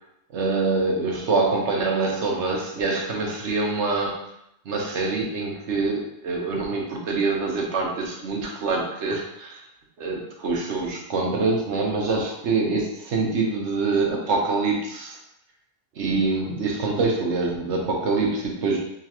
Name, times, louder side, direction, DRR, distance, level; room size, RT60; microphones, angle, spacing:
voice 1, 0.3-4.3 4.6-9.6 10.0-15.2 16.0-18.8, right 3 dB, 65° right, -1 dB, 1.1 m, -25 dB
3.7 x 3.1 x 2.8 m, 0.78 s
omnidirectional pair, 1.3 m